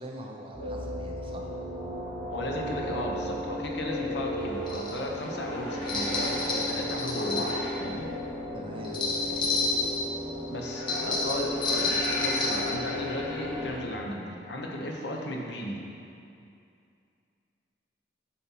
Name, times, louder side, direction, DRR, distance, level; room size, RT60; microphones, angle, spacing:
voice 1, 0.0-1.5 8.5-9.5, equal, 30° right, 0 dB, 0.7 m, -43 dB
sound 1, 0.5-13.7, left 1 dB, 90° left, 1.8 m, -34 dB
voice 2, 2.3-8.1 10.5-15.8, left 1 dB, 70° left, 0 dB, 0.9 m, -35 dB
sound 2, 4.7-5.0 5.9-7.5 8.8-10.0 10.9-12.7, left 3 dB, 25° left, 1.2 m, -29 dB
7.3 x 4.3 x 5.8 m, 2.5 s
head